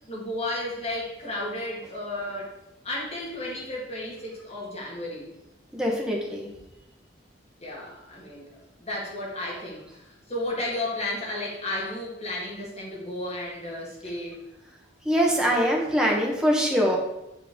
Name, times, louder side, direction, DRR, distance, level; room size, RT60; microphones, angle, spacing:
voice 1, 0.1-2.5 2.8-5.3 7.6-8.5 8.8-10.0 10.3-14.5, left 1 dB, 35° left, -4 dB, 1.9 m, -33 dB
voice 2, 5.7-6.5 15.0-17.0, equal, 5° right, -2 dB, 1.1 m, -23 dB
7.2 x 4.6 x 3.7 m, 0.91 s
head